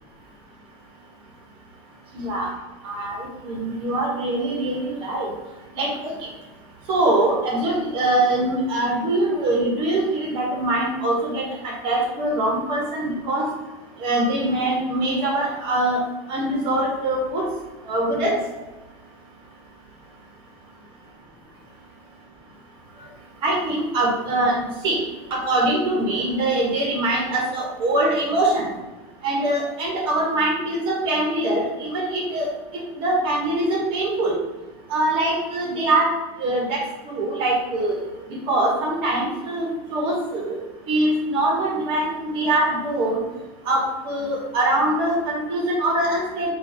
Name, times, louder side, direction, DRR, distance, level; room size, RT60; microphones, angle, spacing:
voice 1, 2.1-2.5 2.8-5.3 5.7-6.1 6.9-13.5 14.0-16.0 16.3-17.5 17.8-18.3 23.4-25.0 25.3-28.7 29.2-32.5 33.0-34.3 34.9-36.1 36.4-38.0 38.5-40.6 40.9-43.2 43.7-46.5, right 1 dB, 40° right, -1 dB, 1.3 m, -23 dB
4.7 x 2.5 x 4.3 m, 1.1 s
supercardioid pair, 170°, 14 cm